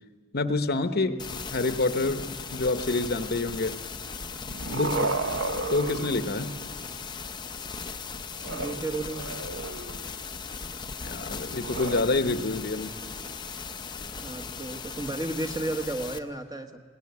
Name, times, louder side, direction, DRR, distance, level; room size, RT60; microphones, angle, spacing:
voice 1, 0.3-1.2 1.5-2.2 2.5-3.8 4.7-4.9 5.7-6.5 11.0-12.9, left 3 dB, 45° left, 9 dB, 0.9 m, -27 dB
sound 1, 1.2-16.2, left 5 dB, 20° left, 0.7 m, -38 dB
sound 2, 4.2-6.9 8.4-10.1 11.5-12.0, right 3 dB, 55° right, 0.8 m, -33 dB
voice 2, 8.5-9.3 14.2-16.8, right 2 dB, 20° right, 6 dB, 1.3 m, -33 dB
20.5 x 17.5 x 9.5 m, 1.4 s
head